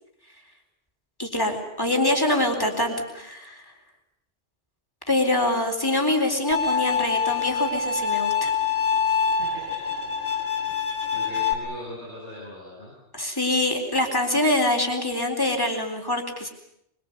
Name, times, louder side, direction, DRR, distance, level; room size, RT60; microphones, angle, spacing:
voice 1, 1.2-3.6 5.1-8.5 13.2-16.5, left 1 dB, 20° left, 3 dB, 4.0 m, -24 dB
Bowed string instrument, 6.5-11.5, left 6 dB, 65° left, 2.5 m, -25 dB
voice 2, 9.4-9.9 11.1-12.9, left 1 dB, 90° left, -5 dB, 8.0 m, -40 dB
24.5 x 23.5 x 8.1 m, 0.75 s
omnidirectional pair, 1.1 m